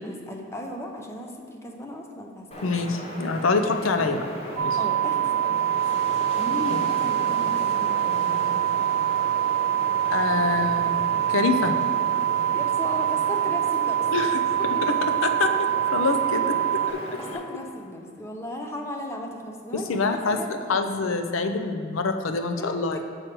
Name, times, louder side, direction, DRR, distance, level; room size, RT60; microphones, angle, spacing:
voice 1, 0.0-2.7 4.8-5.8 6.4-8.6 12.5-14.1 14.6-15.0 17.2-20.6 22.6-23.0, left 1 dB, 15° left, 2 dB, 0.6 m, -36 dB
Wind, 2.5-17.4, left 1 dB, 30° left, 0.9 m, -37 dB
voice 2, 2.6-4.3 4.6-4.8 6.7-6.8 10.1-10.9 11.3-11.9 14.1-14.4 14.8-14.9 15.2-16.6 16.9-17.0 19.9-20.4 20.7-23.0, left 4 dB, 90° left, 7 dB, 0.5 m, -25 dB
sound 1, 4.6-16.9, right 11 dB, 85° right, 0.6 m, -24 dB
6.4 x 6.1 x 4.5 m, 2.3 s
head